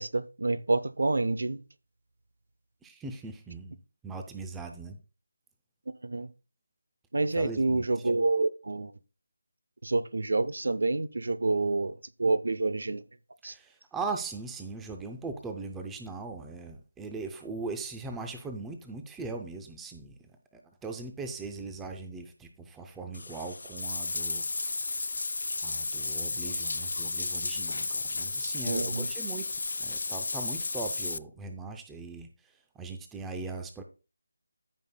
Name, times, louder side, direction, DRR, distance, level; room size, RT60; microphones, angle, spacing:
voice 1, 0.0-1.6 6.0-6.3 7.1-8.9 9.8-13.0 13.4-13.5 28.6-29.1, right 3 dB, 70° right, 0.6 m, -28 dB
voice 2, 2.8-3.8 4.0-5.0 7.3-7.9 13.4-20.2 20.5-24.4 25.6-29.5 29.8-32.3 32.8-33.8, right 3 dB, 5° right, 0.5 m, -39 dB
Bathtub (filling or washing), 23.1-31.2, left 3 dB, 55° left, 0.3 m, -33 dB
14.5 x 5.3 x 2.2 m
figure-of-eight pair, 175°, 0 cm